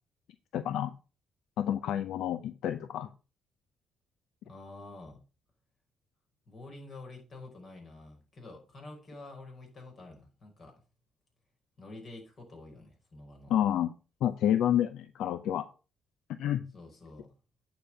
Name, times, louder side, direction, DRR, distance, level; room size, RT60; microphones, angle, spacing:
voice 1, 0.5-0.9 1.6-3.1 13.5-13.9 14.2-15.7 16.4-16.6, left 10 dB, 80° left, 11 dB, 0.6 m, -29 dB
voice 2, 4.4-5.2 6.5-10.7 11.8-13.5 16.7-17.3, left 2 dB, 45° left, 2 dB, 5.0 m, -48 dB
9.2 x 5.2 x 5.5 m, 0.34 s
cardioid pair, 90°, 0 cm